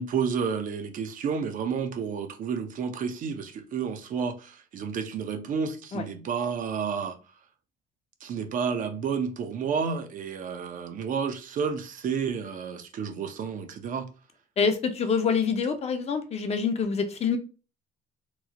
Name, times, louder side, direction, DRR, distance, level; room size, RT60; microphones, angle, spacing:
voice 1, 0.0-7.2 8.2-14.1, right 6 dB, 50° right, 0.6 m, -31 dB
voice 2, 14.6-17.4, left 5 dB, 40° left, 0.6 m, -26 dB
3.0 x 2.0 x 3.6 m
cardioid pair, 110°, 17 cm